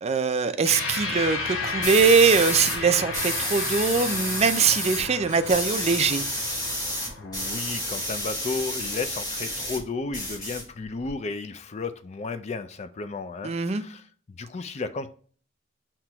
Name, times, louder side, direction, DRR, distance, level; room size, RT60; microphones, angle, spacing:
voice 1, 0.0-6.2 13.4-13.8, right 5 dB, 30° right, 0.4 m, -22 dB
sound 1, 0.6-9.3, left 3 dB, 85° left, 1.0 m, -34 dB
sound 2, 1.8-2.8 3.1-5.0 5.3-9.8 10.1-11.1, equal, 20° left, 1.6 m, -30 dB
voice 2, 7.2-14.0 14.3-15.1, left 3 dB, 35° left, 0.4 m, -33 dB
5.8 x 2.9 x 2.3 m
head